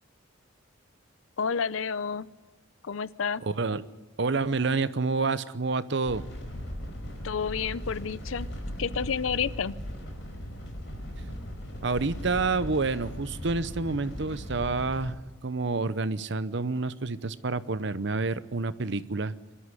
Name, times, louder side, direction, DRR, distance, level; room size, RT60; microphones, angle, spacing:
voice 1, 1.4-2.3 2.8-3.4 7.2-8.5 8.8-9.8, left 6 dB, 85° left, 18 dB, 0.6 m, -30 dB
voice 2, 3.4-3.8 4.2-6.2 11.8-15.2 15.4-19.3, right 3 dB, 65° right, 14 dB, 0.8 m, -28 dB
sound 1, 6.0-15.1, equal, 70° left, 5.1 m, -38 dB
24.0 x 13.0 x 9.9 m, 1.2 s
head